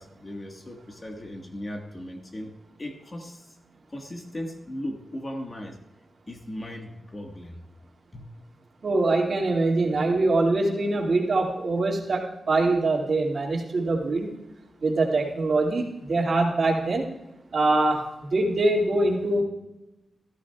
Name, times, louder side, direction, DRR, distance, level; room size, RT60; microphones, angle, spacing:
voice 1, 0.0-3.5 3.9-5.8 6.3-7.6 8.1-8.2, left 1 dB, 25° left, 3 dB, 1.5 m, -37 dB
voice 2, 8.8-14.3 14.8-17.1 17.5-18.1 18.3-19.4, right 2 dB, 55° right, -1 dB, 2.2 m, -23 dB
16.5 x 14.0 x 2.3 m, 0.98 s
wide cardioid pair, 110°, 0 cm